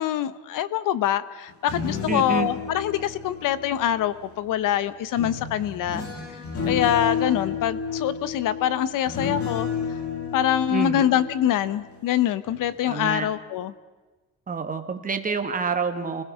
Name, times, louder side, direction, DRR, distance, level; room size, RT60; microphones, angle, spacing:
voice 1, 0.0-6.0 6.7-9.7 10.3-13.7, left 11 dB, 65° left, 15 dB, 0.9 m, -24 dB
sound 1, 1.5-4.4 5.2-12.1 12.5-12.8, left 6 dB, 40° left, 2.8 m, -31 dB
voice 2, 2.1-2.5 10.7-11.0 12.8-13.3 14.5-16.2, right 5 dB, 25° right, 6 dB, 1.7 m, -27 dB
29.5 x 20.5 x 5.8 m, 1.3 s
cardioid pair, 155°, 35 cm